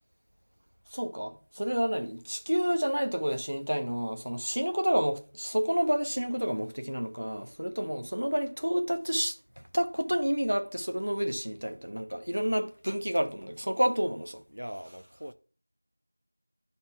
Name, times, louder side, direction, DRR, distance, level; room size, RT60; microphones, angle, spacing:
voice 1, 0.9-9.4 9.7-14.4, equal, 50° right, 1.0 m, -29 dB
voice 2, 14.5-15.3, equal, 85° right, 0.6 m, -41 dB
11.0 x 4.3 x 3.4 m
figure-of-eight pair, 180°, 0 cm